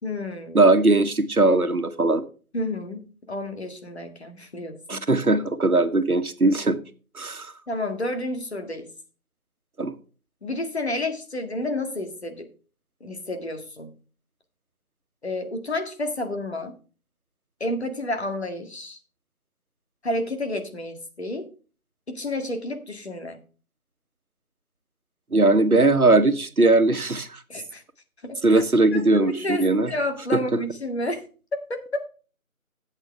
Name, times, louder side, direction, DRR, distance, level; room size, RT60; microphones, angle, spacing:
voice 1, 0.0-0.6 2.5-5.0 7.7-8.9 10.4-12.5 13.0-13.9 15.2-16.7 17.6-19.0 20.0-21.5 22.1-23.4 27.5-27.8 28.2-28.6 28.9-32.0, left 1 dB, 50° left, 6 dB, 1.9 m, -30 dB
voice 2, 0.5-2.2 4.9-6.8 7.1-7.5 9.8-9.9 25.3-27.4 28.4-29.9 30.3-30.4, right 2 dB, 85° right, 10 dB, 1.4 m, -19 dB
12.5 x 8.2 x 3.3 m, 0.37 s
figure-of-eight pair, 165°, 43 cm